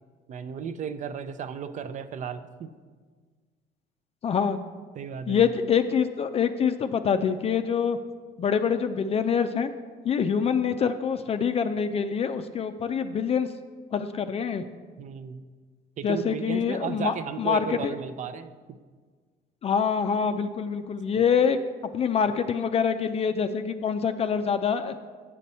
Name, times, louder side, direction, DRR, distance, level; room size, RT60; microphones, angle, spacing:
voice 1, 0.3-2.7 5.0-5.5 15.0-15.4 16.0-18.8 21.1-21.3, right 7 dB, 45° right, 12 dB, 0.5 m, -35 dB
voice 2, 4.2-4.6 5.3-8.0 8.4-9.7 10.0-13.5 13.9-14.6 16.0-17.9 19.6-21.6 21.9-25.0, left 7 dB, 35° left, 9 dB, 0.4 m, -25 dB
8.4 x 6.8 x 4.2 m, 1.5 s
cardioid pair, 110°, 17 cm